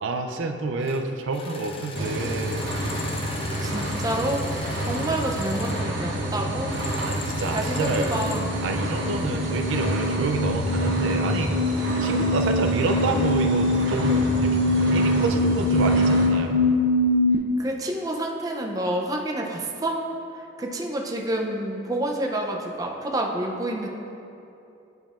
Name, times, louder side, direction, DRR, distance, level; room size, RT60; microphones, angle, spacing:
voice 1, 0.0-2.6 7.0-8.3 8.6-11.5 12.0-16.6, right 3 dB, 85° right, 5 dB, 0.4 m, -28 dB
sound 1, 0.8-1.0 1.3-5.8 6.7-8.5, left 4 dB, 30° left, 0.5 m, -39 dB
sound 2, 1.9-16.3, right 1 dB, 70° right, 0.9 m, -28 dB
voice 2, 3.6-4.4 4.8-6.8 7.5-8.5 17.6-20.0 20.6-23.9, right 1 dB, 20° right, 0 dB, 0.5 m, -28 dB
sound 3, 7.9-17.3, left 1 dB, 85° left, 0.5 m, -24 dB
9.1 x 5.3 x 2.4 m, 2.7 s
head